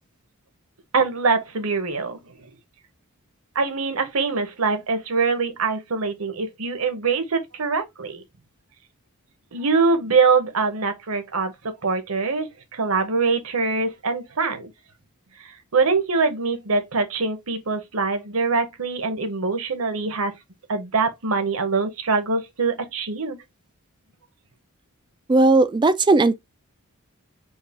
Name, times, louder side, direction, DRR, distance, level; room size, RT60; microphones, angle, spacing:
voice 1, 0.9-2.5 3.5-8.2 9.5-14.7 15.4-20.3 20.7-23.4, right 4 dB, 70° right, 1.0 m, -23 dB
voice 2, 25.3-26.3, right 3 dB, 20° right, 0.3 m, -16 dB
4.7 x 2.4 x 3.5 m
head